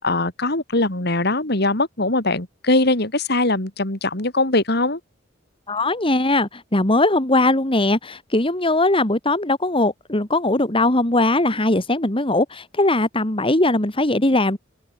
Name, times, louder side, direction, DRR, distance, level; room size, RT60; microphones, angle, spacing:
voice 1, 0.0-5.0, left 2 dB, 60° left, 4.0 m, -21 dB
voice 2, 5.7-14.6, left 2 dB, 30° left, 2.7 m, -20 dB
head